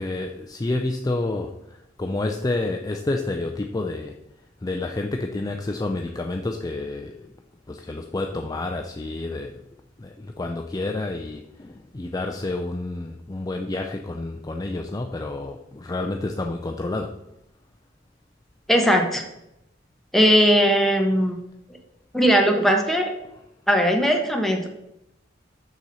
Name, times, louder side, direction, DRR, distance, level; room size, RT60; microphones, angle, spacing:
voice 1, 0.0-4.2 4.6-7.3 7.7-9.6 10.0-17.2, left 2 dB, 20° left, 3 dB, 0.4 m, -29 dB
voice 2, 18.7-19.2 20.1-21.4 22.1-23.1 23.7-24.7, equal, ahead, 2 dB, 1.0 m, -19 dB
6.6 x 6.1 x 4.2 m, 0.84 s
head